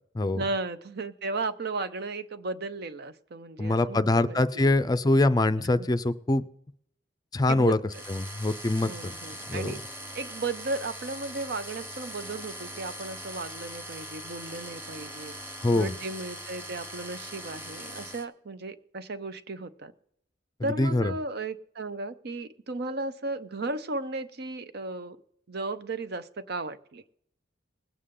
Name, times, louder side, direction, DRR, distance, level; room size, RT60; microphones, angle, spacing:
voice 1, 0.3-4.7 5.6-5.9 7.5-8.0 8.8-9.8 10.1-15.4 15.7-19.9 20.6-25.2 25.5-27.0, right 3 dB, 60° right, 12 dB, 0.8 m, -35 dB
voice 2, 3.6-6.4 7.3-7.8 8.1-9.1 9.5-9.7 15.6-15.9 20.6-21.1, left 2 dB, 20° left, 12 dB, 0.5 m, -24 dB
sound 1, 7.9-18.2, equal, 10° right, 1.3 m, -41 dB
20.5 x 8.3 x 3.7 m, 0.69 s
head